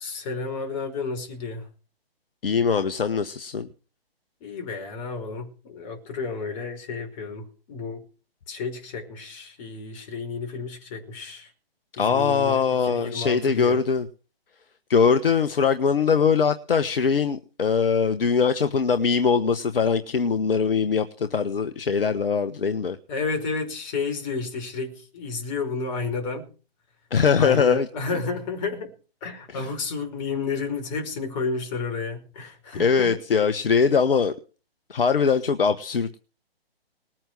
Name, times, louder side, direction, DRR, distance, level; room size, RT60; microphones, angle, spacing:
voice 1, 0.0-1.7 4.4-8.0 8.5-11.5 12.0-13.8 23.1-26.5 27.4-28.9 29.2-33.2, left 4 dB, 30° left, 5.3 m, -31 dB
voice 2, 2.4-3.7 12.0-14.1 14.9-23.0 27.1-27.9 29.5-29.7 32.7-34.3 34.9-36.2, left 6 dB, 65° left, 1.3 m, -22 dB
20.0 x 9.1 x 6.2 m
figure-of-eight pair, 135°, 30 cm